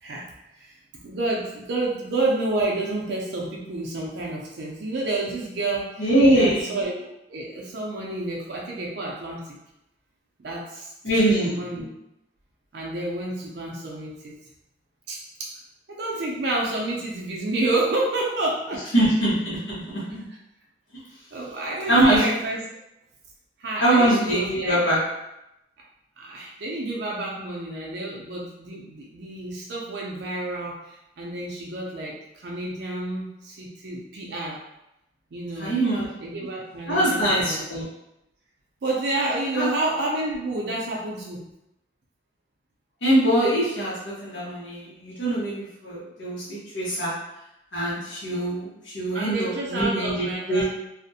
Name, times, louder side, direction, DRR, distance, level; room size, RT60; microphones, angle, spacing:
voice 1, 1.0-9.6 10.4-11.8 12.7-14.3 15.1-15.5 16.0-18.9 21.3-22.6 23.6-24.8 26.2-34.6 35.3-35.7 36.2-37.6 38.8-41.4 49.1-50.6, right 2 dB, 65° right, -3 dB, 0.4 m, -29 dB
voice 2, 6.0-6.8 11.0-11.6 18.9-20.2 21.9-22.2 23.8-25.0 35.6-36.1 36.9-37.8 39.5-39.7 43.0-47.1 47.7-50.6, right 1 dB, 90° left, -9 dB, 0.8 m, -22 dB
2.4 x 2.1 x 2.6 m, 0.87 s
head